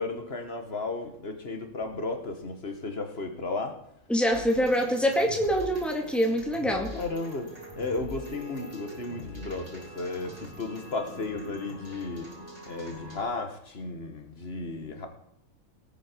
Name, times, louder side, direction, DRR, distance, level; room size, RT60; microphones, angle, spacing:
voice 1, 0.0-3.8 6.9-12.3 12.7-15.1, left 3 dB, 45° left, 5 dB, 1.8 m, -34 dB
voice 2, 4.1-6.9, equal, ahead, 2 dB, 2.1 m, -25 dB
sound 1, 4.3-13.2, left 1 dB, 25° right, 4.7 m, -43 dB
18.5 x 9.0 x 4.6 m, 0.78 s
omnidirectional pair, 1.5 m